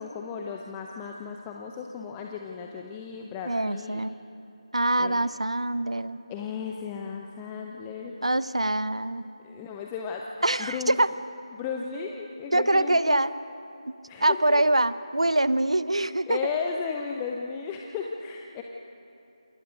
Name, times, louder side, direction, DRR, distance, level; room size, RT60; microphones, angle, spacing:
voice 1, 0.0-4.0 5.0-5.2 6.3-8.1 9.4-10.3 10.6-11.0 11.5-13.2 14.1-14.6 16.3-18.6, left 6 dB, 10° left, 1 dB, 0.8 m, -35 dB
voice 2, 3.5-4.1 4.7-6.2 8.2-9.2 10.4-11.1 12.5-13.3 13.9-14.0 14.2-16.4, right 1 dB, 70° right, 15 dB, 1.0 m, -24 dB
28.0 x 27.5 x 5.2 m, 2.8 s
figure-of-eight pair, 160°, 3 cm